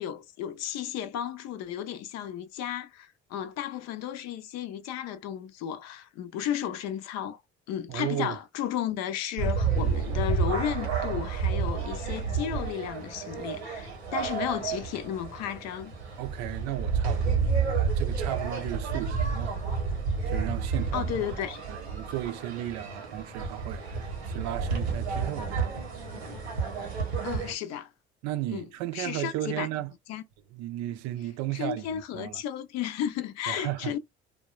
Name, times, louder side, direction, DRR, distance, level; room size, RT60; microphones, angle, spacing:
voice 1, 0.0-7.4 7.7-15.9 20.9-21.6 27.2-27.9 28.5-28.7 28.9-29.7 30.1-30.2 31.5-34.0, left 10 dB, 55° left, 0.6 m, -33 dB
voice 2, 7.9-8.4 16.2-19.6 20.3-21.3 21.7-25.8 28.2-29.9 30.5-32.4 33.5-33.9, right 14 dB, 55° right, 0.5 m, -35 dB
sound 1, 9.4-27.5, right 5 dB, 90° right, 0.9 m, -30 dB
3.3 x 2.2 x 2.2 m
figure-of-eight pair, 55°, 32 cm